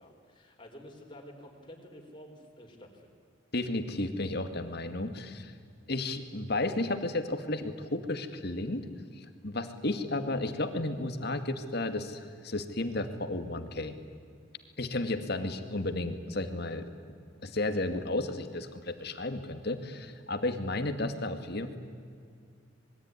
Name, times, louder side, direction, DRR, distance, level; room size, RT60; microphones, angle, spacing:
voice 1, 0.0-3.1, equal, 25° left, 2 dB, 4.3 m, -50 dB
voice 2, 3.5-5.5 5.9-8.8 9.1-14.0 14.8-16.9 17.4-21.8, left 2 dB, 50° left, 8 dB, 2.0 m, -33 dB
26.5 x 21.5 x 9.7 m, 2.3 s
head